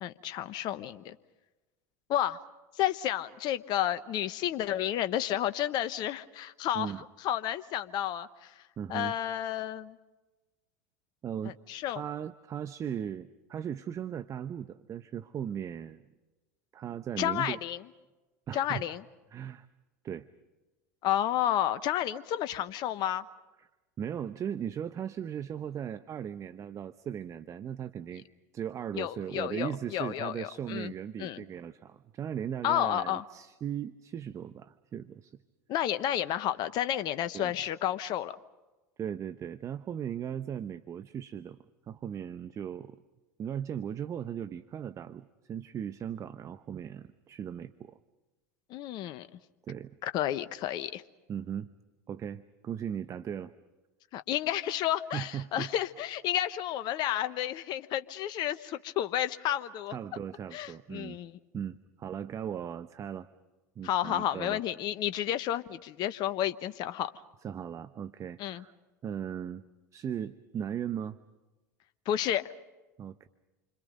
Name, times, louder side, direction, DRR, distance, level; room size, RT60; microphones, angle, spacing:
voice 1, 0.0-1.2 2.1-2.4 2.8-6.9 7.2-8.5 8.9-10.0 11.4-12.0 17.2-17.8 18.5-19.0 21.0-23.2 28.9-30.9 31.2-31.4 32.6-33.2 35.7-38.4 48.7-49.3 50.0-51.0 54.1-60.0 60.5-61.4 63.8-67.1 68.4-68.6 72.1-72.5, left 11 dB, 50° left, 12 dB, 1.0 m, -31 dB
voice 2, 8.8-9.2 11.2-11.6 11.9-16.0 16.7-17.6 18.5-18.8 19.3-19.7 20.0-20.3 24.0-28.2 28.5-35.4 37.3-37.5 39.0-41.6 41.9-43.0 43.4-48.0 49.7-50.0 51.3-51.7 52.1-53.5 55.1-55.7 59.9-61.2 61.5-63.3 63.8-64.6 67.4-68.7 69.0-69.6 69.9-71.2 73.0-73.3, right 9 dB, 35° right, 12 dB, 0.9 m, -37 dB
28.5 x 25.5 x 5.3 m, 1.1 s
hypercardioid pair, 85°, 9 cm